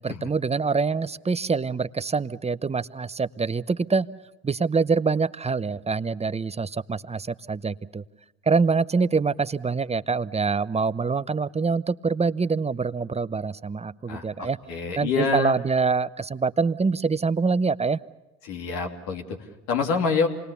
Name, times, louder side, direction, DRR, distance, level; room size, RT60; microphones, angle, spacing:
voice 1, 0.0-4.1 4.4-8.0 8.5-14.6 15.0-18.0, right 4 dB, 20° right, 16 dB, 0.8 m, -25 dB
voice 2, 14.1-15.6 18.4-20.3, left 5 dB, 70° left, 2 dB, 2.9 m, -27 dB
27.5 x 20.0 x 7.0 m, 1.1 s
hypercardioid pair, 55°, 33 cm